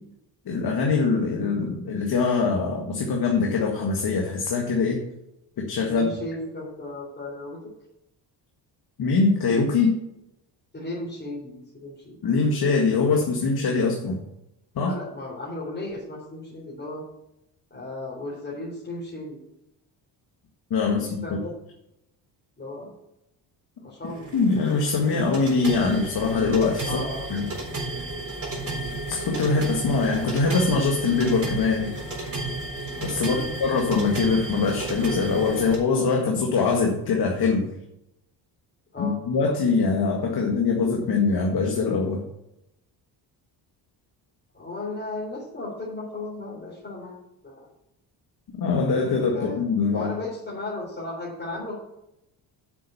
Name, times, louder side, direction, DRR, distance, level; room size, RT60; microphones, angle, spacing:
voice 1, 0.5-5.0 5.6-6.1 9.0-9.9 12.2-14.2 14.8-14.9 20.7-21.4 24.3-27.0 27.3-27.5 29.1-31.9 33.0-37.7 39.0-42.2 48.6-50.1, left 4 dB, 55° left, 0 dB, 1.9 m, -23 dB
voice 2, 5.9-7.6 10.7-12.2 14.8-17.0 17.7-19.4 21.0-21.5 22.6-22.9 23.8-24.3 26.8-27.3 33.2-33.5 38.9-39.2 44.5-47.1 47.4-47.7 49.3-49.6 49.9-51.8, left 2 dB, 25° left, -6 dB, 3.8 m, -35 dB
sound 1, 24.0-35.8, right 2 dB, 30° right, 4.0 m, -33 dB
7.7 x 6.4 x 6.8 m, 0.85 s
cardioid pair, 80°, 45 cm